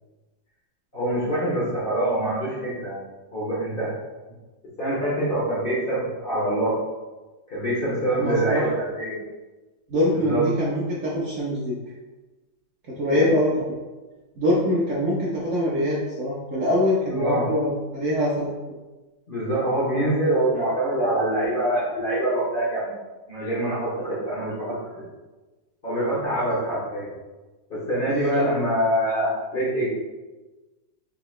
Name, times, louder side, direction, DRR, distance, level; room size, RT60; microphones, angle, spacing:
voice 1, 0.9-3.0 3.3-4.0 4.8-6.8 7.5-9.2 10.1-10.5 13.1-13.3 17.1-17.5 19.3-22.9 23.3-25.0 25.8-27.1 27.7-29.9, right 1 dB, 40° left, -8 dB, 0.8 m, -25 dB
voice 2, 8.1-8.6 9.9-11.7 13.0-13.5 14.4-18.5 28.1-28.5, equal, 60° right, -6 dB, 0.8 m, -24 dB
3.9 x 2.7 x 3.1 m, 1.2 s
omnidirectional pair, 1.9 m